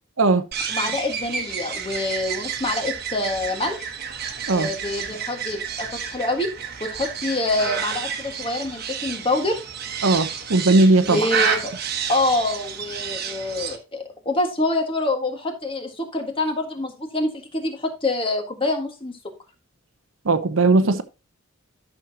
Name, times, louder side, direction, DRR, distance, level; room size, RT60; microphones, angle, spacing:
sound 1, 0.5-13.8, right 7 dB, 45° right, 1.2 m, -30 dB
voice 1, 0.7-3.9 4.5-6.5 6.8-9.6 11.0-11.7 12.1-19.2, left 2 dB, 25° left, 1.7 m, -26 dB
voice 2, 10.0-11.3 20.2-21.0, right 2 dB, 70° right, 0.8 m, -18 dB
12.0 x 6.4 x 2.9 m
head